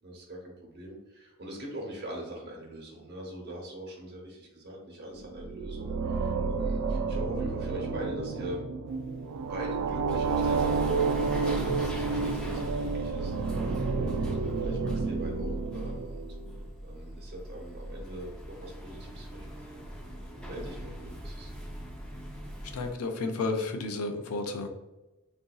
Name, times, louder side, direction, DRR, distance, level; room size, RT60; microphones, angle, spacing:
voice 1, 0.0-8.6 9.5-16.3 16.8-21.5, right 1 dB, 50° right, -1 dB, 0.9 m, -42 dB
sound 1, 5.2-16.5, right 4 dB, 75° right, 0.3 m, -30 dB
sound 2, 8.9-22.9, equal, 5° left, 0.5 m, -40 dB
voice 2, 22.6-24.7, left 3 dB, 85° left, 6 dB, 0.5 m, -32 dB
3.7 x 2.6 x 2.3 m, 1.0 s
head